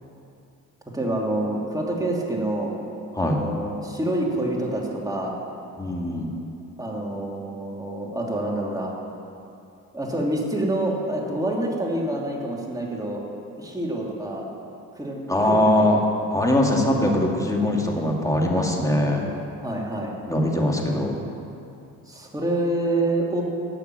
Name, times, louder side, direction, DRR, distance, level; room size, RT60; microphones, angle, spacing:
voice 1, 0.9-2.8 3.2-5.4 6.8-9.0 9.9-13.2 13.6-14.5 14.9-16.0 19.6-20.1 22.1-23.4, right 1 dB, 10° right, -3 dB, 2.9 m, -27 dB
voice 2, 5.8-6.3 15.3-16.0 16.3-19.3 20.3-21.2, left 1 dB, 10° left, -1 dB, 2.3 m, -21 dB
12.0 x 6.9 x 9.2 m, 2.6 s
supercardioid pair, 80°, 36 cm